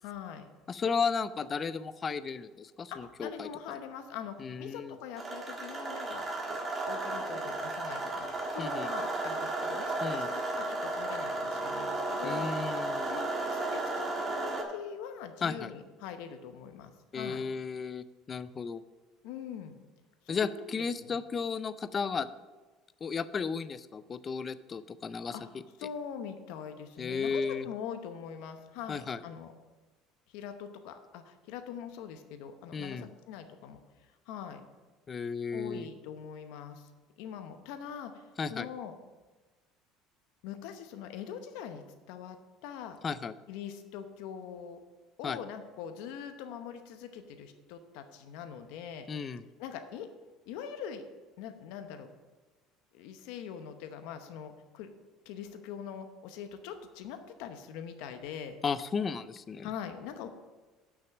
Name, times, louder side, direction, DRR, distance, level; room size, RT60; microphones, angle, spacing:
voice 1, 0.0-0.4 2.9-6.2 6.5-6.6 6.9-12.5 13.1-17.4 19.2-19.8 20.2-20.5 21.1-21.2 25.3-25.4 25.8-29.5 30.3-34.6 35.5-36.9 37.2-38.9 40.4-42.4 42.6-43.0 43.5-44.8 45.2-49.1 49.6-50.1 50.5-51.0 51.4-52.1 52.9-54.9 55.2-58.6 59.6-60.3, left 8 dB, 75° left, 7 dB, 0.8 m, -43 dB
voice 2, 0.7-3.5 4.4-5.0 8.6-8.9 10.0-10.3 12.2-13.2 15.4-15.7 17.1-18.8 20.3-22.3 23.0-25.4 27.0-27.7 28.9-29.2 32.7-33.1 35.1-35.9 38.4-38.7 43.0-43.3 45.2-45.4 49.1-49.4 58.6-59.7, left 5 dB, 30° left, 15 dB, 0.4 m, -34 dB
sound 1, 5.2-14.6, right 2 dB, 20° right, 1.5 m, -34 dB
6.3 x 5.9 x 7.2 m, 1.2 s
cardioid pair, 125°, 0 cm